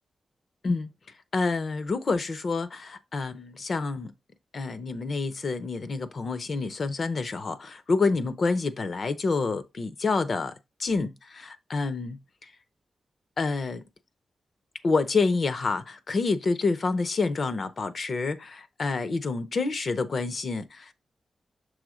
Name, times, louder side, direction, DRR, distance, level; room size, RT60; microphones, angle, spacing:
voice 1, 1.3-4.1 4.5-12.5 13.4-13.8 14.8-20.9, left 3 dB, 45° left, 0.7 m, -28 dB
6.4 x 3.4 x 4.8 m
wide cardioid pair, 155°, 0 cm